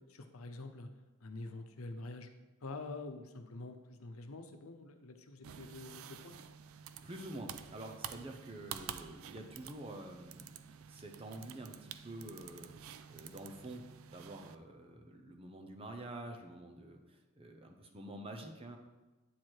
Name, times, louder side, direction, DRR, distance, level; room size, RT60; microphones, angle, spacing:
voice 1, 0.1-0.9 1.2-2.3 2.6-6.4, left 2 dB, 90° left, 6 dB, 0.8 m, -46 dB
sound 1, 5.4-14.5, right 8 dB, 75° right, 0.4 m, -49 dB
voice 2, 7.0-12.7 13.1-13.8 14.1-18.8, right 1 dB, 25° right, 3 dB, 0.7 m, -48 dB
9.1 x 4.7 x 4.6 m, 1.1 s
head